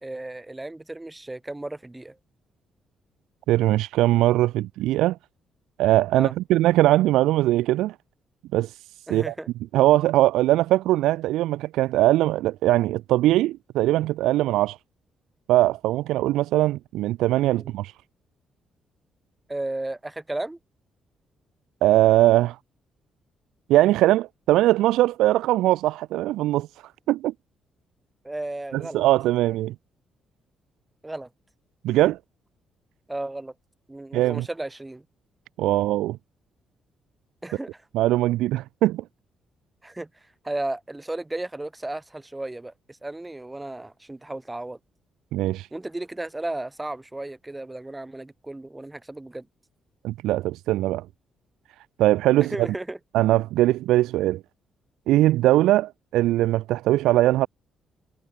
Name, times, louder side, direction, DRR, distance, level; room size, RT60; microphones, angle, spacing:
voice 1, 0.0-2.2 6.2-6.3 9.1-9.5 17.5-17.7 19.5-20.6 28.2-29.0 31.0-31.3 33.1-33.5 33.9-35.0 37.4-37.8 39.8-44.8 45.7-49.5 52.4-53.0, right 2 dB, 15° right, 5.5 m, -34 dB
voice 2, 3.5-5.2 5.8-7.9 8.5-8.7 9.1-9.3 9.7-14.8 15.5-17.9 21.8-22.6 23.7-26.7 27.1-27.3 28.7-29.7 31.8-32.2 34.1-34.4 35.6-36.2 37.9-39.0 45.3-45.7 50.0-51.1 52.0-52.5 53.1-54.4 55.1-57.5, right 15 dB, 75° right, 0.6 m, -21 dB
hypercardioid pair, 45°, 0 cm